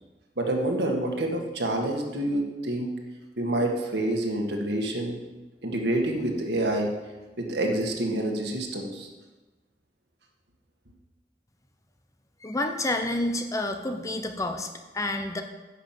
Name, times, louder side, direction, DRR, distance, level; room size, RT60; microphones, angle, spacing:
voice 1, 0.4-2.9 3.4-5.2 5.6-6.9 7.4-9.1, right 1 dB, 65° right, 2 dB, 1.8 m, -27 dB
voice 2, 12.4-15.4, left 1 dB, 20° left, 5 dB, 0.8 m, -29 dB
10.5 x 6.1 x 7.5 m, 1.2 s
head